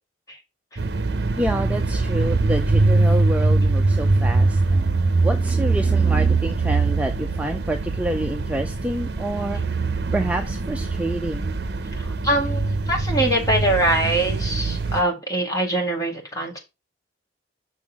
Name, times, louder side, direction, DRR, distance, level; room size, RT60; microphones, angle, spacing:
sound 1, 0.8-15.0, right 3 dB, 60° right, 0.7 m, -22 dB
voice 1, 1.4-9.8 10.1-11.5, right 1 dB, 10° right, 0.5 m, -28 dB
voice 2, 12.0-16.6, right 1 dB, 20° left, 2.1 m, -23 dB
6.2 x 3.8 x 5.9 m
head